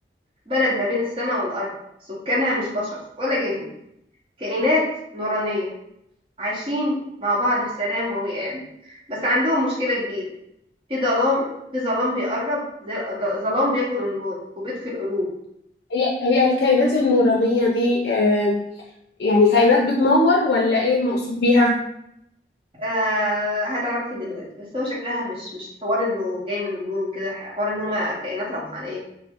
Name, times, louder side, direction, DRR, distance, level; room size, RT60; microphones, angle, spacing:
voice 1, 0.5-1.7 2.1-3.7 4.4-4.9 5.1-5.7 6.4-10.2 10.9-15.3 22.8-29.0, left 1 dB, 30° right, -5 dB, 0.9 m, -25 dB
voice 2, 15.9-18.6 19.2-21.7, left 2 dB, 70° left, -3 dB, 0.4 m, -18 dB
3.0 x 2.0 x 3.5 m, 0.78 s
head